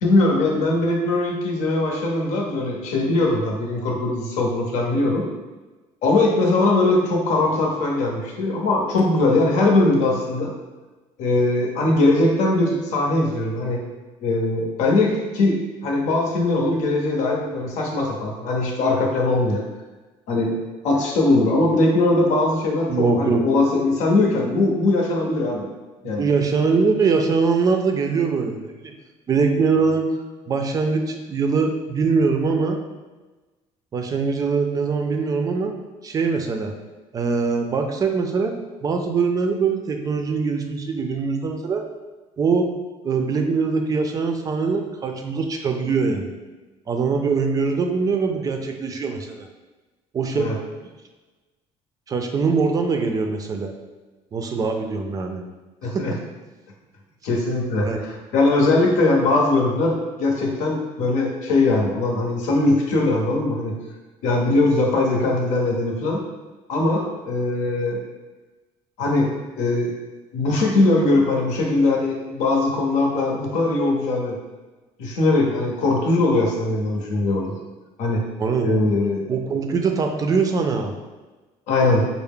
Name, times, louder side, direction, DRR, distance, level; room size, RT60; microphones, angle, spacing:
voice 1, 0.0-5.3 6.0-10.5 11.2-13.8 14.2-15.5 15.8-19.6 20.3-20.6 20.8-25.7 26.0-26.3 50.4-50.5 55.8-56.1 57.2-63.7 64.2-66.2 66.7-68.0 69.0-69.9 70.3-74.4 75.0-77.5 78.0-78.2 78.6-79.2 81.7-82.1, left 2 dB, 75° left, 0 dB, 0.8 m, -20 dB
voice 2, 22.9-23.4 26.0-28.9 29.3-30.1 30.5-32.8 33.9-35.7 36.0-36.7 37.1-38.5 38.8-41.9 42.4-42.7 43.0-46.3 46.9-49.5 50.1-50.5 52.1-53.7 54.3-55.4 55.9-56.1 57.8-58.0 78.4-78.8 79.3-80.9 82.0-82.1, right 4 dB, 30° right, 4 dB, 0.4 m, -22 dB
4.4 x 2.0 x 3.6 m, 1.2 s
cardioid pair, 135°, 12 cm